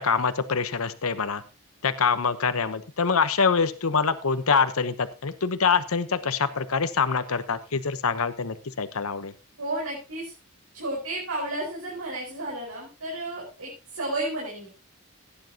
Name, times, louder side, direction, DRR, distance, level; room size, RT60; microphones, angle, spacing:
voice 1, 0.0-1.4 1.8-9.3, left 5 dB, 80° left, 11 dB, 1.0 m, -25 dB
voice 2, 9.6-10.3 10.7-14.7, right 1 dB, 90° right, -3 dB, 4.9 m, -32 dB
17.0 x 10.0 x 2.9 m, 0.29 s
head